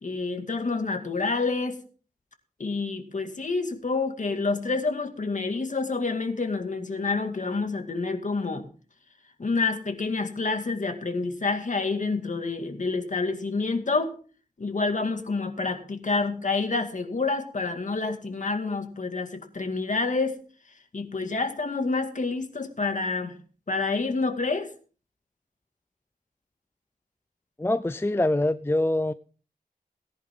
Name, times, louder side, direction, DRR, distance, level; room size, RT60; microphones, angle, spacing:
voice 1, 0.0-1.8 2.6-8.7 9.4-14.1 14.6-20.4 20.9-23.3 23.7-24.7, left 3 dB, 55° left, 2.2 m, -28 dB
voice 2, 27.6-29.1, left 1 dB, 15° left, 0.5 m, -24 dB
18.0 x 10.5 x 3.8 m
wide cardioid pair, 85°, 16 cm